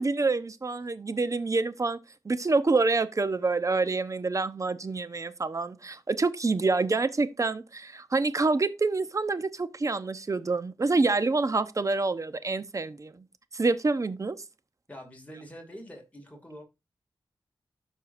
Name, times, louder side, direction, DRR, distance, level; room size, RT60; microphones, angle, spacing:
voice 1, 0.0-2.0 2.2-13.2 13.5-14.4, right 3 dB, 40° right, 0.9 m, -27 dB
voice 2, 14.9-16.6, equal, 15° left, 2.6 m, -45 dB
12.5 x 4.7 x 2.6 m
cardioid pair, 70°, 9 cm